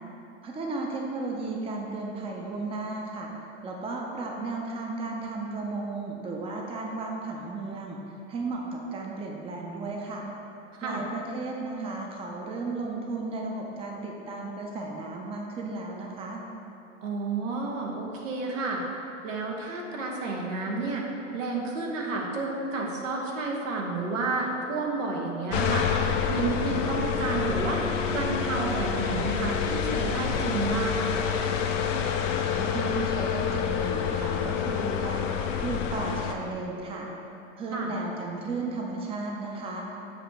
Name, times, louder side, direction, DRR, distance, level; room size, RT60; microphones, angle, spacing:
voice 1, 0.4-3.3 3.6-8.0 8.3-10.3 10.8-16.4 32.6-37.1 37.6-39.8, right 3 dB, 15° right, 0 dB, 0.6 m, -34 dB
voice 2, 17.0-18.8 19.2-21.1 21.3-25.9 26.3-31.3 37.7-37.9, right 3 dB, 85° right, -1 dB, 1.2 m, -31 dB
sound 1, 25.5-36.3, left 7 dB, 75° left, 0.7 m, -28 dB
7.2 x 2.8 x 5.8 m, 2.8 s
hypercardioid pair, 120°, 38 cm